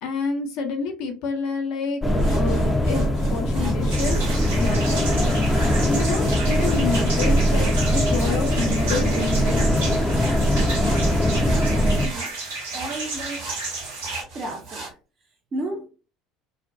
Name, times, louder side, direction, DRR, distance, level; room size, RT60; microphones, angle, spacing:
voice 1, 0.0-2.0 2.3-4.3 4.6-10.0, left 4 dB, 60° left, 0.6 m, -29 dB
sound 1, 2.0-12.1, equal, 15° left, 0.5 m, -21 dB
sound 2, 2.1-14.9, right 3 dB, 55° right, 1.1 m, -40 dB
sound 3, 3.9-14.2, right 3 dB, 75° right, 0.9 m, -33 dB
voice 2, 11.4-12.4 12.7-13.5 14.3-14.9 15.5-15.9, right 1 dB, 40° right, 0.5 m, -33 dB
2.5 x 2.1 x 2.4 m
figure-of-eight pair, 65°, 0 cm